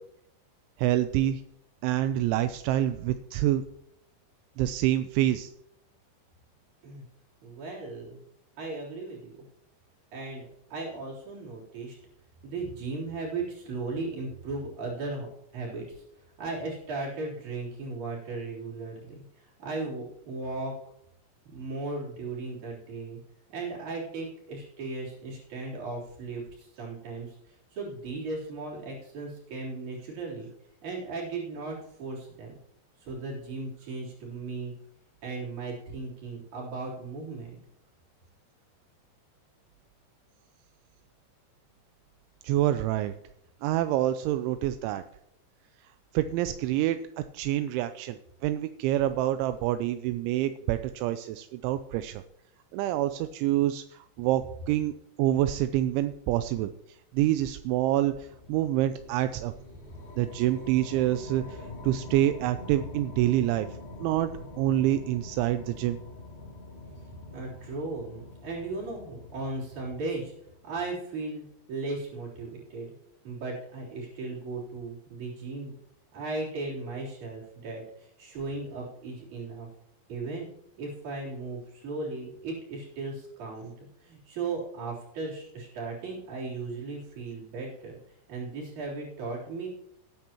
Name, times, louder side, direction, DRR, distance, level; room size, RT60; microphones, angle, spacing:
voice 1, 0.8-1.4 1.8-3.6 4.6-5.5 42.4-43.1 43.6-45.0 46.1-47.0 47.3-52.2 52.7-54.9 55.2-56.7 57.1-59.5 60.2-63.7 64.0-66.0, right 13 dB, 85° right, 10 dB, 2.9 m, -27 dB
voice 2, 7.4-8.2 8.6-9.5 10.1-12.0 12.4-15.3 15.5-20.7 21.5-23.2 23.5-30.5 30.8-32.6 33.0-34.7 35.2-37.6 67.3-70.3 70.6-71.4 71.7-72.9 73.2-75.7 76.1-79.7 80.1-80.5 80.8-83.7 84.0-88.0 88.3-89.7, right 3 dB, 45° right, -4 dB, 4.6 m, -36 dB
sound 1, 58.2-70.7, left 2 dB, 55° left, 4.7 m, -45 dB
18.5 x 9.6 x 3.0 m, 0.76 s
omnidirectional pair, 5.3 m